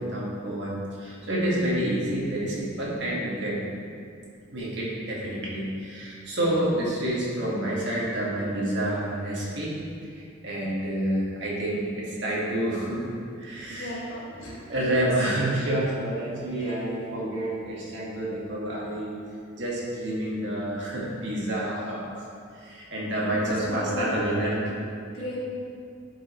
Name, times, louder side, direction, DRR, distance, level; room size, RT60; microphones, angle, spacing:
voice 1, 0.0-3.6 4.5-9.8 10.1-13.1 13.4-14.1 14.7-19.2 19.6-24.7, right 1 dB, 60° right, -6 dB, 1.9 m, -28 dB
voice 2, 13.7-15.0 23.2-24.2 25.1-25.4, left 1 dB, 85° left, -5 dB, 1.8 m, -35 dB
10.5 x 5.4 x 3.1 m, 2.3 s
head